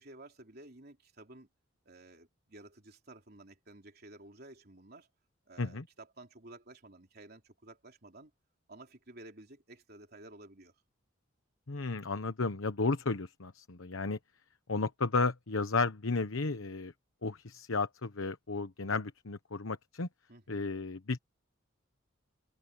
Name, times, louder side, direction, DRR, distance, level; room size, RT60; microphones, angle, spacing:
voice 1, 0.0-1.5 1.9-5.1 5.5-8.3 8.7-10.8 20.3-20.7, right 2 dB, 50° right, 3.5 m, -53 dB
voice 2, 11.7-14.2 14.7-16.9 17.2-20.1 20.5-21.2, left 3 dB, 85° left, 1.1 m, -33 dB
head